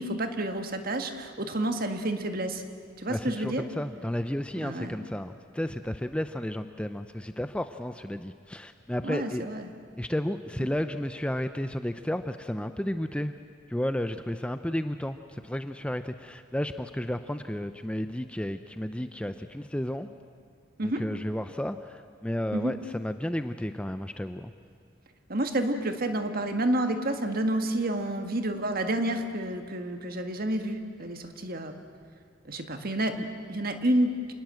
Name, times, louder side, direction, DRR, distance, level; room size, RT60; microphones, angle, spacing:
voice 1, 0.0-2.6 3.0-3.6 4.6-5.0 9.0-9.7 20.8-21.0 22.5-22.7 25.3-31.8 32.5-34.3, right 1 dB, 45° right, 6 dB, 1.8 m, -29 dB
voice 2, 3.1-9.4 10.0-13.3 13.7-20.1 20.8-24.5, left 1 dB, 5° left, 9 dB, 0.5 m, -32 dB
27.5 x 20.0 x 7.7 m, 2.3 s
head